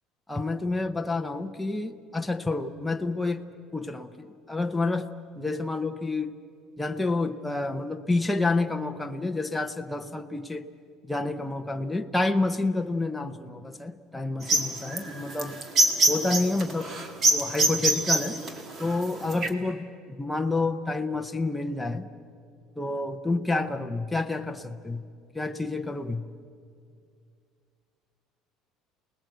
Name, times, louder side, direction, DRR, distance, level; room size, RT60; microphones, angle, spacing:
voice 1, 0.3-3.5 3.7-5.1 5.4-6.3 6.8-10.7 11.0-15.6 16.1-17.0 17.3-18.4 18.8-22.1 22.8-25.0 25.3-26.2, left 2 dB, 5° left, 5 dB, 0.7 m, -29 dB
sound 1, 14.4-19.5, right 2 dB, 30° right, 1.7 m, -24 dB
29.0 x 19.5 x 7.9 m, 2.3 s
cardioid pair, 175°, 0 cm